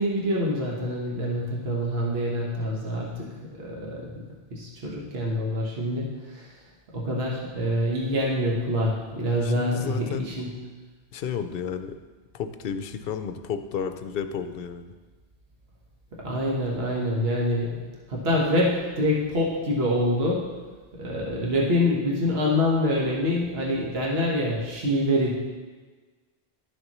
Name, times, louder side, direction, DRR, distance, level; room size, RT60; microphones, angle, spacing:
voice 1, 0.0-4.2 4.5-6.5 6.9-10.5 16.2-17.8 18.1-20.5 20.9-25.3, left 1 dB, 65° right, -3 dB, 1.5 m, -26 dB
voice 2, 9.4-10.3 11.1-12.0 12.3-14.9, left 7 dB, 65° left, 9 dB, 0.7 m, -32 dB
12.0 x 6.6 x 3.0 m, 1.3 s
omnidirectional pair, 1.1 m